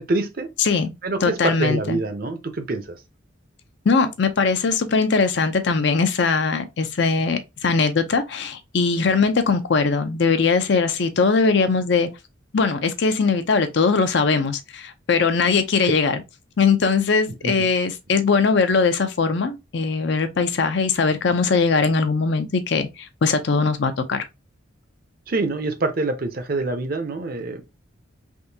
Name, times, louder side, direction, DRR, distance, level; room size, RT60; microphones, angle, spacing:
voice 1, 0.0-0.5 1.0-3.0 17.4-17.7 25.3-27.7, right 2 dB, 45° right, 0.6 m, -26 dB
voice 2, 0.6-0.9 1.2-2.0 3.9-12.1 12.5-16.2 16.6-24.2, left 4 dB, 55° left, 0.5 m, -20 dB
3.6 x 2.6 x 2.7 m
head